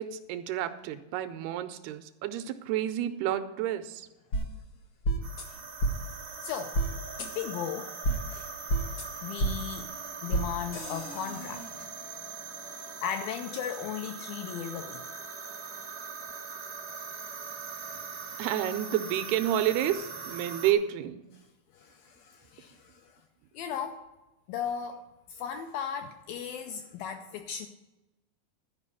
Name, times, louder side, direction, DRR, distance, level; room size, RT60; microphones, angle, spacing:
voice 1, 0.0-4.1 18.4-21.2, right 11 dB, 80° right, 10 dB, 2.4 m, -30 dB
sound 1, 4.3-4.4 5.0-5.4 5.8-5.9 6.7-6.9 7.2-7.3 8.0-8.2 8.7-9.0 9.4-9.5 10.3-10.4 10.7-11.7, right 2 dB, 65° left, 1.2 m, -29 dB
sound 2, 5.2-20.7, right 5 dB, 55° right, 1.0 m, -41 dB
voice 2, 6.4-6.8 7.2-7.9 8.3-8.5 9.2-9.9 10.2-12.1 13.0-15.2 21.3-21.5 21.7-23.2 23.5-24.1 24.5-27.7, left 8 dB, 80° left, 6 dB, 2.1 m, -37 dB
12.5 x 5.3 x 8.2 m, 1.0 s
omnidirectional pair, 4.7 m